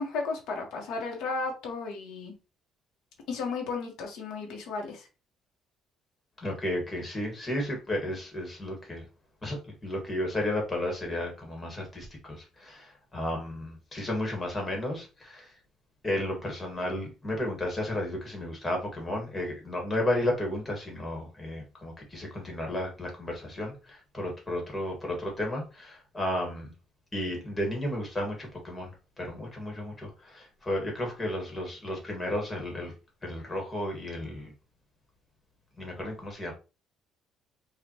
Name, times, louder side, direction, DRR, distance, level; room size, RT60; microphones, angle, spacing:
voice 1, 0.0-2.3 3.3-5.1, left 4 dB, 80° left, 2 dB, 1.2 m, -34 dB
voice 2, 6.4-9.0 9.4-15.5 16.0-23.7 24.1-26.7 27.1-28.9 29.2-32.9 33.2-34.5 35.8-36.5, left 1 dB, 20° left, 1 dB, 1.5 m, -33 dB
5.0 x 2.5 x 2.9 m, 0.30 s
cardioid pair, 150°, 0 cm